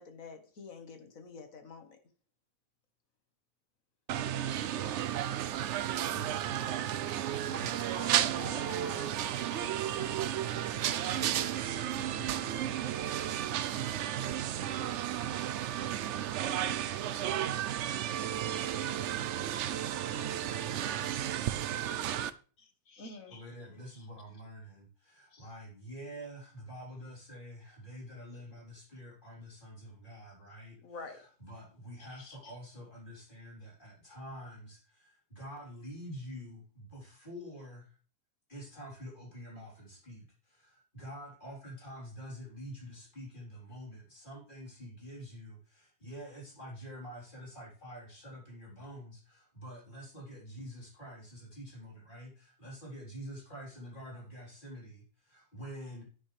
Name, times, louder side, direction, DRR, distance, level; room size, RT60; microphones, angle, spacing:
voice 1, 0.0-2.0 18.7-19.0 22.6-23.4 25.3-25.4 30.8-31.2 32.2-32.5, left 4 dB, 55° left, 1.7 m, -48 dB
sound 1, 4.1-22.3, right 11 dB, 75° right, 0.6 m, -33 dB
voice 2, 5.7-10.5 23.3-37.9 38.5-56.0, equal, 30° left, 3.9 m, -47 dB
voice 3, 8.2-8.7 9.6-9.7 9.9-10.9 11.5-16.6, right 4 dB, 55° right, 1.5 m, -53 dB
10.0 x 9.5 x 3.3 m
omnidirectional pair, 1.8 m